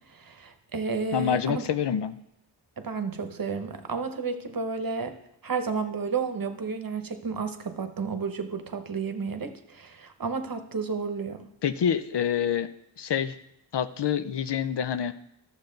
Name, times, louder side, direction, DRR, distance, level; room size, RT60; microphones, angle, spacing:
voice 1, 0.1-1.6 2.8-5.1 5.4-11.4, right 5 dB, 50° right, 8 dB, 1.0 m, -32 dB
voice 2, 1.1-2.2 11.6-12.7 13.0-13.4 13.7-15.1, left 8 dB, 65° left, 12 dB, 0.6 m, -26 dB
11.5 x 7.1 x 3.9 m, 0.79 s
wide cardioid pair, 70°, 46 cm